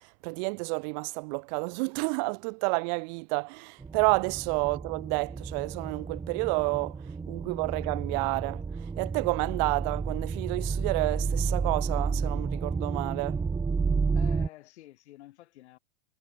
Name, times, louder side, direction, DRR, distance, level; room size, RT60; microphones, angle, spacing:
voice 1, 0.2-6.9 7.3-8.6 9.0-13.4, right 36 dB, 35° right, 0.7 m, -30 dB
sound 1, 3.8-14.5, right 5 dB, 10° right, 1.7 m, -31 dB
voice 2, 14.1-15.8, left 15 dB, 60° left, 8.0 m, -50 dB
hypercardioid pair, 115°, 38 cm